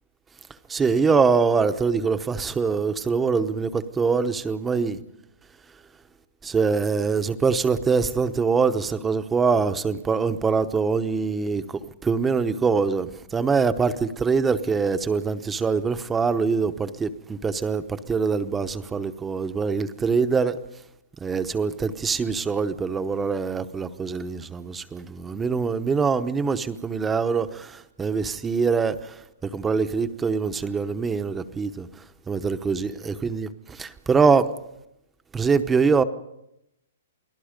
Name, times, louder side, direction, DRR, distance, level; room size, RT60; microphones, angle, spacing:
voice 1, 0.7-5.0 6.4-11.6 12.0-20.6 21.2-27.7 28.0-28.9 29.5-31.9 32.3-33.5 33.8-34.5 35.3-36.0, right 5 dB, 10° right, 0.9 m, -23 dB
29.0 x 19.0 x 5.1 m
hypercardioid pair, 160°, 0 cm